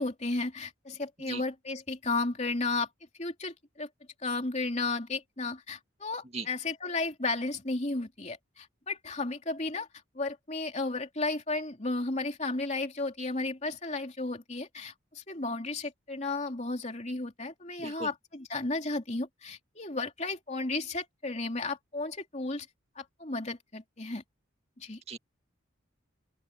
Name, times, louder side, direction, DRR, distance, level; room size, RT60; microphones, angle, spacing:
voice 1, 0.0-2.9 3.2-3.9 4.2-9.9 10.1-22.7 23.0-24.2 24.8-25.0, left 3 dB, 35° left, 3.1 m, -33 dB
voice 2, 17.8-18.1 25.1-25.2, right 3 dB, 30° right, 2.2 m, -38 dB
open air
head